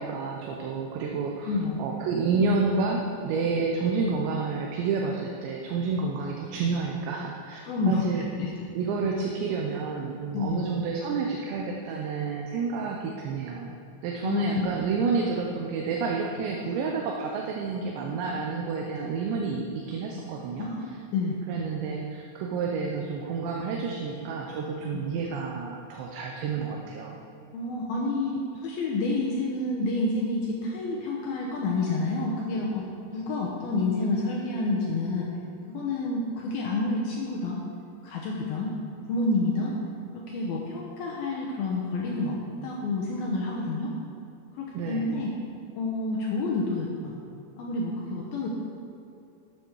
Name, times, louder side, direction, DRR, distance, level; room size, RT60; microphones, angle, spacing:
voice 1, 0.0-8.2 8.7-20.7 21.5-27.2 44.7-45.1, right 4 dB, 75° right, 0 dB, 2.9 m, -29 dB
voice 2, 1.4-1.9 7.6-8.0 8.4-8.5 10.3-10.7 14.2-14.7 20.6-21.4 24.9-25.1 27.5-35.3 35.7-37.6 38.0-38.8 39.1-39.8 40.1-42.4 42.6-43.9 44.6-45.3 45.8-47.1 47.6-48.5, left 2 dB, 75° left, -3 dB, 2.2 m, -29 dB
12.0 x 9.3 x 4.6 m, 2.7 s
omnidirectional pair, 5.6 m